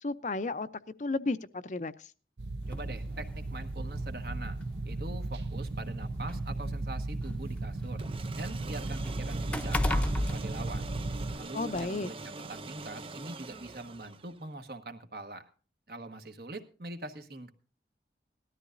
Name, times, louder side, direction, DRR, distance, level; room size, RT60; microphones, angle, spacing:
voice 1, 0.0-0.7 1.0-2.1 11.5-12.1, left 3 dB, 45° left, 12 dB, 0.5 m, -33 dB
sound 1, 2.4-11.4, right 2 dB, 80° right, 0.8 m, -36 dB
sound 2, 2.7-2.9 3.9-4.0 4.5-4.6 5.6-7.5 7.9-11.4 11.7-11.9, left 1 dB, 5° left, 0.7 m, -33 dB
voice 2, 2.7-4.6 4.8-8.0 8.3-10.9 11.4-12.2 12.5-15.5 15.9-17.5, right 2 dB, 60° right, 8 dB, 1.3 m, -43 dB
sound 3, 8.0-14.5, right 3 dB, 30° right, 0.6 m, -43 dB
18.5 x 13.0 x 2.6 m, 0.37 s
head